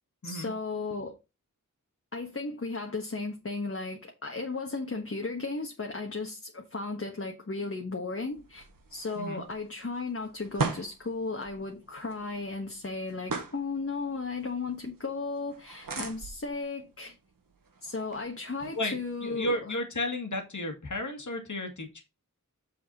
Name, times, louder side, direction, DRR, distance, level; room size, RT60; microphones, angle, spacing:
voice 1, 0.2-1.2 2.1-17.2 17.8-19.6, left 3 dB, 45° left, 1.3 m, -35 dB
sound 1, 8.2-19.5, right 4 dB, 90° right, 1.3 m, -41 dB
voice 2, 19.2-22.0, left 1 dB, 60° left, 2.1 m, -33 dB
7.2 x 6.0 x 4.1 m
wide cardioid pair, 75°, 33 cm